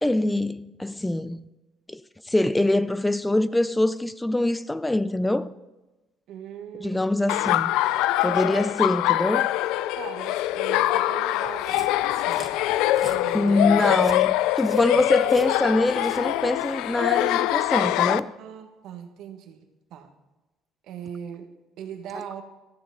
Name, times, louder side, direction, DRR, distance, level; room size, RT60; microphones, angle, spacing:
voice 1, 0.0-1.4 1.9-2.0 2.3-5.5 6.8-7.8 8.2-9.5 13.3-18.3, left 1 dB, 10° left, 0.4 m, -24 dB
voice 2, 6.3-7.1 9.9-12.6 13.0-13.7 14.9-15.1 18.4-20.1 20.8-22.4, right 9 dB, 75° right, 1.4 m, -40 dB
Laughter, 7.3-18.2, left 15 dB, 85° left, 0.3 m, -23 dB
sound 1, 11.5-16.6, right 3 dB, 20° right, 1.7 m, -47 dB
14.0 x 7.2 x 5.6 m
cardioid pair, 110°, 0 cm